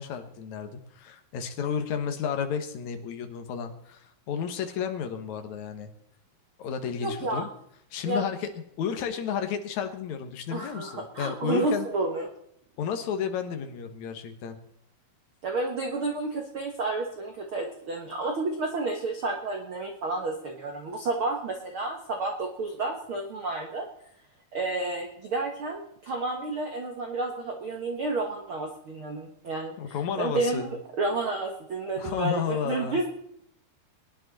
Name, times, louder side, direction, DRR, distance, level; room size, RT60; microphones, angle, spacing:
voice 1, 0.0-5.9 6.6-7.5 7.9-8.5 8.8-11.9 12.8-14.6 29.8-30.7 32.0-33.0, left 7 dB, 60° left, 6 dB, 2.2 m, -32 dB
voice 2, 7.0-7.4 8.0-8.2 10.5-12.3 15.4-23.9 24.5-33.1, right 3 dB, 65° right, 2 dB, 1.2 m, -31 dB
21.0 x 10.5 x 4.2 m, 0.75 s
omnidirectional pair, 4.7 m